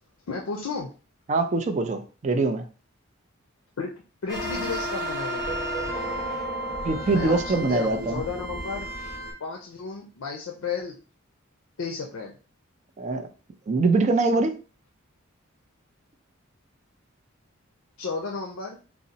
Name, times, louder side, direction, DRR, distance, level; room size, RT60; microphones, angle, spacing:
voice 1, 0.3-0.9 3.8-3.9 4.2-5.7 7.1-8.9 9.4-11.0 11.8-12.4 18.0-18.8, left 4 dB, 80° left, 1 dB, 0.5 m, -33 dB
voice 2, 1.3-2.7 6.8-8.2 13.0-13.3 13.7-14.5, right 3 dB, 35° right, 6 dB, 0.4 m, -23 dB
sound 1, 4.3-9.3, right 1 dB, 10° right, 1.3 m, -32 dB
2.7 x 2.0 x 3.8 m, 0.35 s
head